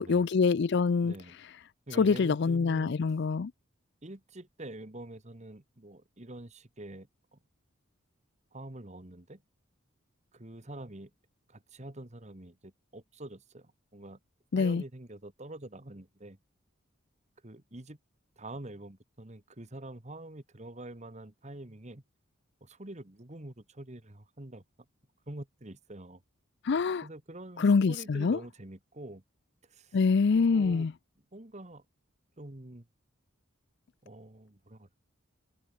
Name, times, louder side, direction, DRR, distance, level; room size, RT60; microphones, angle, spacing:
voice 1, 0.0-1.1 2.0-3.5 14.5-14.8 26.6-27.1 27.6-28.4 29.9-30.9, left 4 dB, 55° left, 0.4 m, -25 dB
voice 2, 1.0-1.4 1.9-2.9 4.0-7.4 8.5-9.4 10.3-11.1 11.5-14.2 14.5-16.4 17.4-18.0 18.4-22.0 22.6-24.6 25.3-26.2 27.0-29.2 29.7-30.0 30.3-30.9 31.3-31.8 32.4-32.9 34.0-35.0, right 1 dB, 35° right, 1.6 m, -46 dB
head